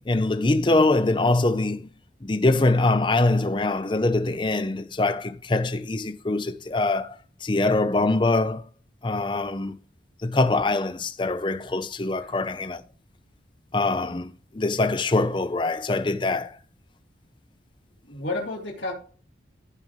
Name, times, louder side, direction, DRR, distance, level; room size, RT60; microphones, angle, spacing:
voice 1, 0.0-1.9 2.2-7.2 7.4-8.7 9.0-9.8 10.2-12.8 13.7-16.6, left 2 dB, 25° left, 0.6 m, -23 dB
voice 2, 18.1-18.9, left 2 dB, 80° left, 3.4 m, -31 dB
15.5 x 5.2 x 3.2 m
head